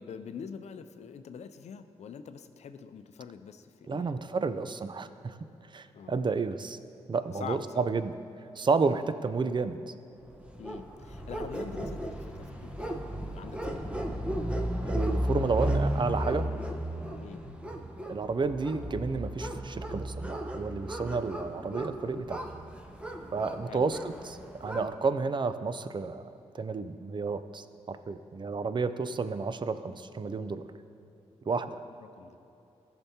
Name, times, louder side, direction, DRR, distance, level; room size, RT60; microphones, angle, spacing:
voice 1, 0.0-4.4 5.9-6.2 7.3-7.9 10.6-13.8 17.2-17.4 23.7-23.9 31.5-31.7 32.0-32.4, left 7 dB, 70° left, 10 dB, 0.5 m, -44 dB
voice 2, 3.9-5.3 5.7-6.8 7.1-8.1 8.6-9.9 14.8-16.5 18.1-22.5 23.3-30.6 31.5-31.8, right 4 dB, 40° right, 11 dB, 0.5 m, -31 dB
sound 1, 10.4-24.9, equal, 10° right, 1.0 m, -34 dB
15.0 x 5.9 x 2.8 m, 2.9 s
cardioid pair, 50°, 12 cm